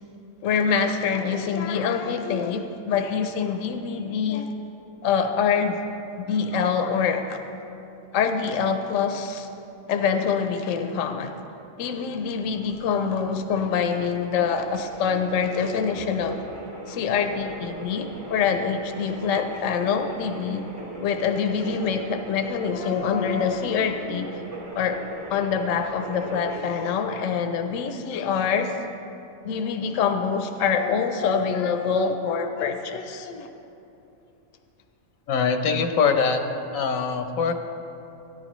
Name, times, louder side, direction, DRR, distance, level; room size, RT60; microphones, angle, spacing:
voice 1, 0.4-4.5 5.0-5.8 6.2-7.4 8.1-9.5 9.9-11.4 11.8-16.4 16.9-20.7 21.0-24.4 24.7-25.0 25.3-28.8 29.4-33.5, left 6 dB, 75° left, 7 dB, 1.0 m, -25 dB
sound 1, 12.2-26.8, right 1 dB, 60° right, 1.8 m, -39 dB
voice 2, 35.3-36.4 36.7-37.5, left 5 dB, 90° left, 6 dB, 1.2 m, -22 dB
17.5 x 10.0 x 3.1 m, 2.8 s
omnidirectional pair, 1.4 m